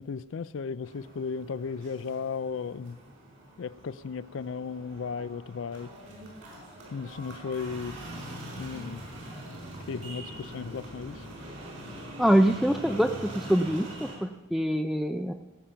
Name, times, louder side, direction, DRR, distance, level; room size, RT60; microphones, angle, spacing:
voice 1, 0.0-3.0 3.6-5.9 6.9-8.0 8.6-9.0 9.9-11.2, left 5 dB, 65° left, 17 dB, 0.4 m, -35 dB
sound 1, 0.8-14.2, right 1 dB, 65° right, 4.7 m, -43 dB
voice 2, 12.2-15.3, equal, ahead, 7 dB, 0.4 m, -25 dB
19.0 x 7.4 x 5.7 m, 1.1 s
head